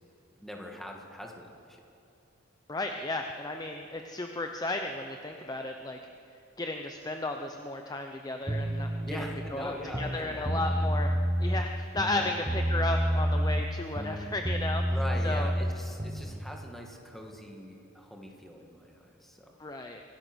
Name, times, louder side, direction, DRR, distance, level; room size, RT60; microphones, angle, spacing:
voice 1, 0.4-1.8 9.0-10.7 12.1-12.4 14.9-19.6, equal, ahead, 1 dB, 2.1 m, -42 dB
voice 2, 2.7-6.0 6.6-14.8 15.2-15.5 19.6-20.0, left 2 dB, 20° left, 4 dB, 0.8 m, -34 dB
sound 1, 8.5-9.5 9.9-11.7 12.0-13.7 14.0-16.3, equal, 20° right, 1.1 m, -29 dB
25.0 x 17.5 x 6.3 m, 2.7 s
head